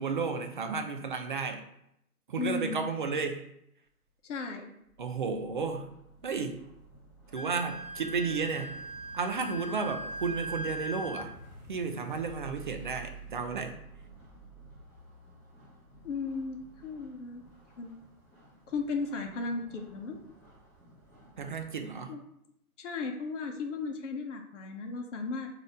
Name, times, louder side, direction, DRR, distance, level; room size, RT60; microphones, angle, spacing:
voice 1, 0.0-1.6 2.3-3.4 5.0-5.9 6.2-6.6 7.3-8.8 9.1-11.3 11.7-13.8 21.4-22.2, right 5 dB, 35° right, 5 dB, 0.4 m, -33 dB
voice 2, 2.4-2.8 4.2-4.6 16.0-17.4 17.8-17.9 18.7-20.2 22.1-22.2 22.8-25.5, left 4 dB, 50° left, 3 dB, 0.8 m, -35 dB
sound 1, 4.9-18.0, right 4 dB, 20° right, 1.2 m, -52 dB
sound 2, 5.3-21.9, right 1 dB, 5° left, 1.3 m, -58 dB
Wind instrument woodwind instrument, 7.3-11.3, right 1 dB, 75° left, 1.1 m, -40 dB
4.0 x 2.7 x 4.8 m, 0.77 s
figure-of-eight pair, 130°, 45 cm